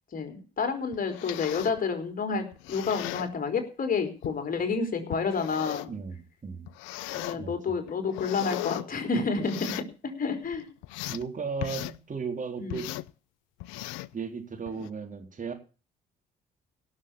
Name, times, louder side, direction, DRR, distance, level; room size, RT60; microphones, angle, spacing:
voice 1, 0.1-5.9 7.1-10.7 12.6-12.8, left 5 dB, 45° left, 5 dB, 4.0 m, -30 dB
sound 1, 0.9-1.8 2.5-3.3 4.2-4.4 5.1-6.0 6.7-7.4 7.9-8.8 9.4-9.9 10.4-11.2 11.6-12.0 12.7-13.1 13.6-14.1 14.7-14.9, left 17 dB, 80° left, 0.6 m, -37 dB
voice 2, 5.9-6.7 7.4-7.5 11.1-12.9 14.1-15.5, right 5 dB, 40° right, 4 dB, 4.0 m, -35 dB
17.0 x 7.4 x 7.0 m, 0.36 s
hypercardioid pair, 55°, 20 cm